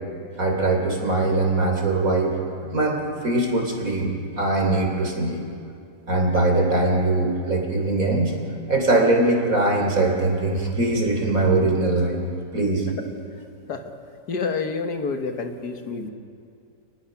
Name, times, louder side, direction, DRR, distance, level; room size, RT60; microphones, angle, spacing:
voice 1, 0.4-2.3 2.6-5.4 6.1-8.3 8.7-12.2 12.5-12.9, right 2 dB, 50° right, 1 dB, 3.8 m, -21 dB
voice 2, 14.3-16.1, left 4 dB, 65° left, 5 dB, 1.8 m, -28 dB
28.5 x 20.5 x 5.9 m, 2.4 s
omnidirectional pair, 1.9 m